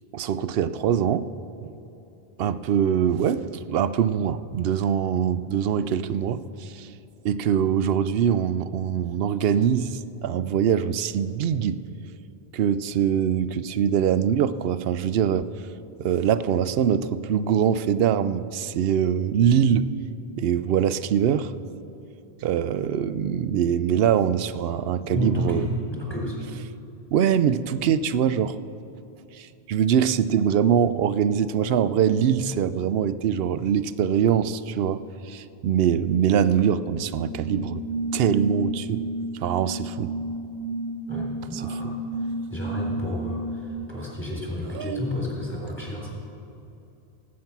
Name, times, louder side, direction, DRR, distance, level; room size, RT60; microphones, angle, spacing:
voice 1, 0.1-1.3 1.6-1.7 2.4-6.9 7.2-11.8 12.5-15.5 16.0-19.9 20.4-21.5 22.4-25.6 27.1-28.6 29.3-37.8 38.1-39.1 39.3-40.1 41.5-41.9 44.7-45.0, right 8 dB, 70° right, 14 dB, 0.8 m, -23 dB
voice 2, 24.9-26.5 41.1-46.1, left 1 dB, 10° left, -4 dB, 3.6 m, -31 dB
sound 1, 37.0-43.7, right 1 dB, 65° left, 4.1 m, -31 dB
18.0 x 8.6 x 6.0 m, 2.8 s
omnidirectional pair, 1.1 m